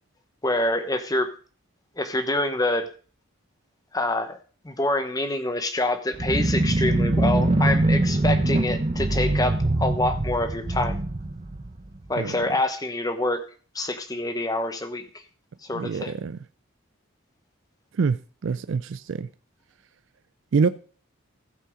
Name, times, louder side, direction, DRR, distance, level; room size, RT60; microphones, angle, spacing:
voice 1, 0.4-1.3 2.0-2.9 3.9-4.4 4.6-11.0 12.1-13.4 13.7-15.0 15.6-16.1, left 1 dB, 15° left, 1.0 m, -26 dB
sound 1, 6.1-12.1, right 2 dB, 30° right, 0.7 m, -23 dB
voice 2, 15.7-16.4 17.9-19.3 20.5-20.7, right 5 dB, 60° right, 0.4 m, -25 dB
15.0 x 5.6 x 5.0 m
head